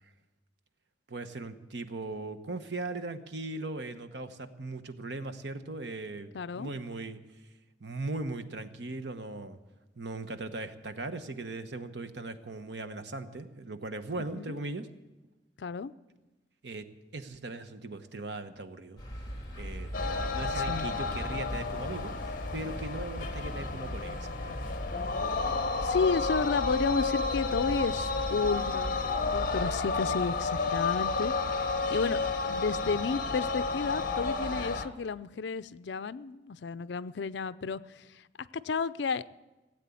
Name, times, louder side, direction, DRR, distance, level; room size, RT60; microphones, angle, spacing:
voice 1, 1.1-7.2 7.8-9.6 10.0-14.9 16.6-16.9 17.1-19.0 19.6-22.1 22.5-24.8, right 2 dB, 70° right, 10 dB, 1.1 m, -39 dB
voice 2, 6.3-6.7 14.4-14.5 15.6-15.9 20.6-20.9 25.8-32.2 32.5-38.1 38.6-39.2, left 5 dB, 70° left, 16 dB, 0.5 m, -32 dB
sound 1, 19.0-29.8, equal, 25° left, 2.9 m, -40 dB
sound 2, 19.9-34.9, left 4 dB, 50° left, 1.0 m, -31 dB
17.0 x 8.3 x 8.4 m, 1.1 s
head